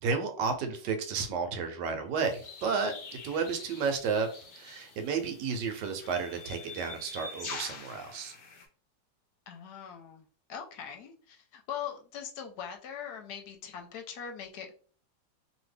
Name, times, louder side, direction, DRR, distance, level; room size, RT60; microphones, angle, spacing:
voice 1, 0.0-2.9 3.2-4.3 4.6-8.3, right 5 dB, 85° right, 7 dB, 1.3 m, -32 dB
sound 1, 2.2-8.7, left 3 dB, 50° left, 0.6 m, -45 dB
voice 2, 9.5-14.7, left 8 dB, 75° left, 4 dB, 1.1 m, -41 dB
2.8 x 2.6 x 3.2 m, 0.41 s
omnidirectional pair, 1.9 m